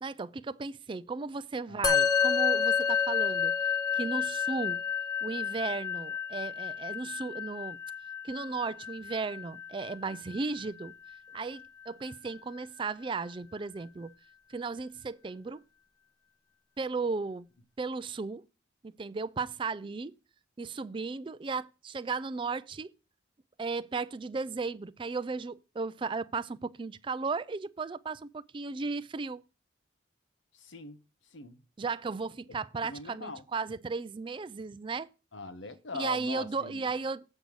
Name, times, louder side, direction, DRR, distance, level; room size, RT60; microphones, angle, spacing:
voice 1, 0.0-3.5 3.9-4.8 5.2-7.8 8.2-10.9 11.3-14.1 14.5-15.6 16.8-17.5 17.8-18.4 19.0-20.1 20.6-22.9 23.6-29.4 31.8-35.1 35.9-37.2, right 4 dB, 25° right, 0.3 m, -35 dB
Musical instrument, 1.8-11.4, left 7 dB, 20° left, 0.8 m, -30 dB
voice 2, 30.6-31.0 31.3-31.6 32.5-32.6 32.8-33.4 35.3-36.9, left 3 dB, 80° left, 1.0 m, -41 dB
7.9 x 5.3 x 6.2 m
head